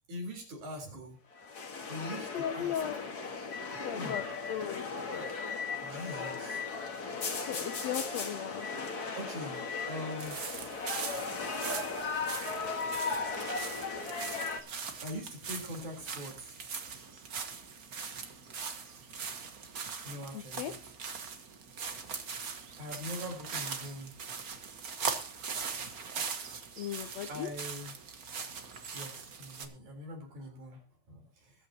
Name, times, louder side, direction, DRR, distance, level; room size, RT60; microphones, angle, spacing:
voice 1, 0.1-1.2 1.9-2.8 3.7-4.2 5.8-6.6 9.2-10.4 13.2-13.9 15.0-16.5 20.0-20.8 22.8-24.1 27.3-27.9 28.9-31.5, left 1 dB, 75° right, 2 dB, 5.4 m, -43 dB
sound 1, 1.3-14.6, left 4 dB, 40° left, 1.7 m, -37 dB
voice 2, 2.1-2.9 3.8-4.2 4.5-5.3 7.5-8.7 20.3-20.7 26.8-27.5, left 10 dB, 70° left, 7 dB, 1.9 m, -37 dB
sound 2, 10.2-29.6, right 5 dB, 45° right, 1.1 m, -41 dB
21.5 x 9.1 x 2.9 m, 0.36 s
omnidirectional pair, 3.5 m